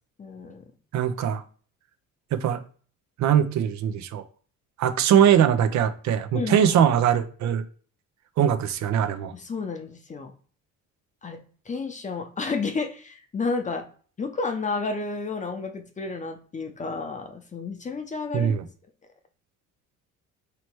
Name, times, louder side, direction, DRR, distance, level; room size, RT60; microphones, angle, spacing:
voice 1, 0.2-0.6 6.3-6.7 9.3-10.3 11.2-11.4 11.7-13.8 14.2-18.5, left 4 dB, 25° left, 6 dB, 0.7 m, -31 dB
voice 2, 0.9-1.4 2.3-2.6 3.2-4.2 4.8-7.6 8.4-9.3 18.3-18.6, right 9 dB, 60° right, 9 dB, 0.6 m, -21 dB
3.1 x 2.9 x 4.5 m, 0.43 s
cardioid pair, 125°, 31 cm